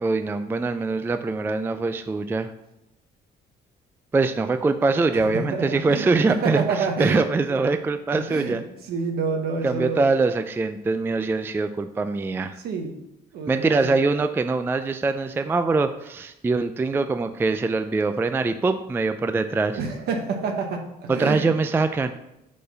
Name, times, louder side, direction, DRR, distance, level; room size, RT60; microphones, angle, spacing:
voice 1, 0.0-2.5 4.1-8.6 9.6-12.5 13.5-19.8 21.1-22.1, right 3 dB, 15° right, 9 dB, 0.3 m, -23 dB
voice 2, 5.1-7.2 7.5-7.6 8.1-8.6 8.9-10.0 12.6-12.9 13.3-14.0 19.7-21.5, right 4 dB, 70° right, 3 dB, 1.1 m, -28 dB
5.1 x 4.4 x 5.6 m, 0.87 s
cardioid pair, 110°, 17 cm